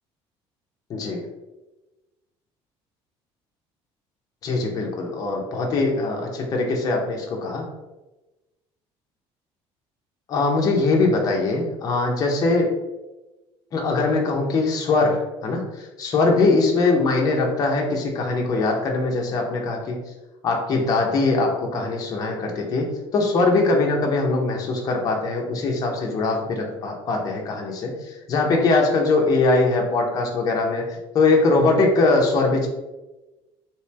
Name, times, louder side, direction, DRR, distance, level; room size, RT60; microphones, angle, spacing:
voice 1, 0.9-1.3 4.4-7.7 10.3-12.7 13.7-20.0 20.4-32.7, left 3 dB, 35° left, 0 dB, 0.7 m, -22 dB
3.1 x 2.9 x 3.2 m, 1.1 s
cardioid pair, 170°, 11 cm